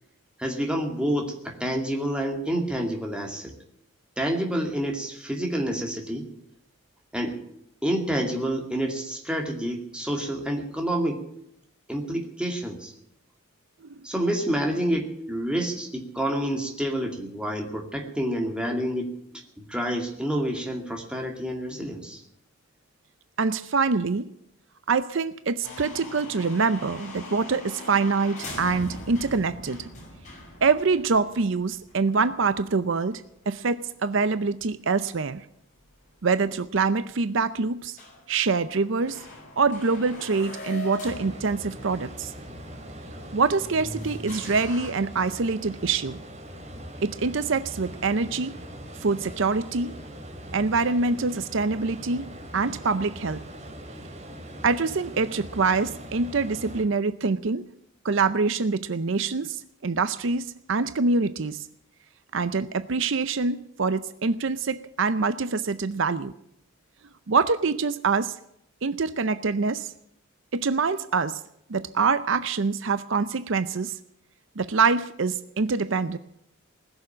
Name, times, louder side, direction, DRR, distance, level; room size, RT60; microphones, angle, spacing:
voice 1, 0.4-3.5 4.2-6.2 7.1-7.4 7.8-11.2 11.9-12.9 14.0-19.1 19.6-22.2, right 1 dB, 5° right, 1 dB, 2.3 m, -28 dB
voice 2, 23.4-24.3 24.9-29.9 30.6-35.5 36.2-38.0 38.3-39.2 39.6-42.3 43.3-46.2 47.0-48.5 49.0-50.0 50.5-52.3 52.5-53.4 54.6-57.6 58.0-61.7 62.3-66.3 67.3-68.4 68.8-69.9 70.5-71.4 71.7-74.0 74.6-76.2, right 4 dB, 60° right, 12 dB, 0.6 m, -25 dB
sound 1, 25.6-33.8 34.1-34.2 34.8-34.9 35.8-35.9 36.1-36.2 36.6-36.7 37.1-37.4 37.7-37.8 38.0-44.9, left 1 dB, 35° left, 6.2 m, -42 dB
sound 2, 41.0-56.8, equal, 35° right, 2.5 m, -41 dB
20.0 x 7.1 x 9.9 m, 0.76 s
head